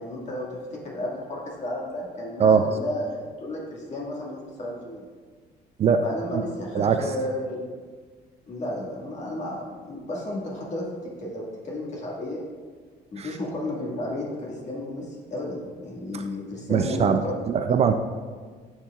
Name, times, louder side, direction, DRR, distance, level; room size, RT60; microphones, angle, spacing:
voice 1, 0.0-5.0 6.0-7.6 8.5-12.4 13.1-17.4 17.7-17.8, left 1 dB, 45° left, -3 dB, 1.8 m, -33 dB
voice 2, 16.7-17.9, right 6 dB, 40° right, 7 dB, 0.4 m, -21 dB
11.0 x 4.4 x 2.4 m, 1.6 s
cardioid pair, 110°, 17 cm